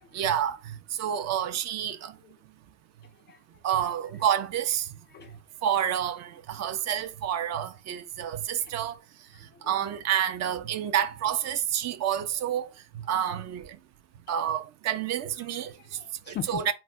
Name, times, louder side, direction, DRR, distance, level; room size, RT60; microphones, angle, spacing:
voice 1, 0.1-2.1 3.6-4.9 5.6-9.0 9.7-12.7 13.1-13.8 14.3-15.7 16.3-16.7, right 9 dB, 40° right, 0.5 m, -29 dB
voice 2, 9.3-9.8 15.5-16.7, left 9 dB, 30° left, 0.3 m, -41 dB
3.9 x 2.1 x 3.5 m
figure-of-eight pair, 55°, 40 cm